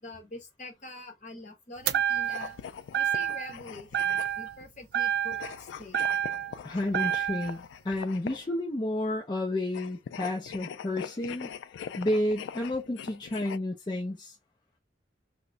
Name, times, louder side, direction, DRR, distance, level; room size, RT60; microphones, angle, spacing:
voice 1, 0.0-2.6 2.9-6.0, left 2 dB, 45° left, 1.1 m, -45 dB
sound 1, 1.9-2.6 2.9-3.6 3.9-4.6 4.9-6.6 6.9-7.6, right 9 dB, 60° right, 0.3 m, -29 dB
sound 2, 2.2-4.6 5.3-8.6 9.7-13.6, left 7 dB, 85° left, 0.3 m, -42 dB
voice 2, 6.6-11.5 12.0-14.3, left 1 dB, 25° left, 0.5 m, -31 dB
2.9 x 2.1 x 3.8 m
head